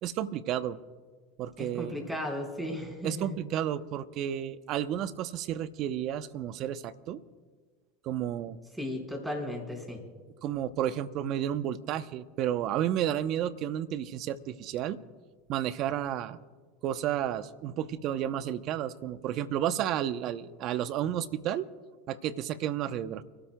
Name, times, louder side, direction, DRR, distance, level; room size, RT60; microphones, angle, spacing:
voice 1, 0.0-0.8 1.4-2.0 3.0-7.2 8.0-8.6 10.4-15.0 15.5-16.4 16.8-21.7 22.1-23.2, right 11 dB, 50° right, 14 dB, 0.7 m, -32 dB
voice 2, 1.6-3.4 8.8-10.0, left 1 dB, 5° right, 1 dB, 4.5 m, -35 dB
30.0 x 12.5 x 2.3 m, 1.5 s
hypercardioid pair, 90°, 0 cm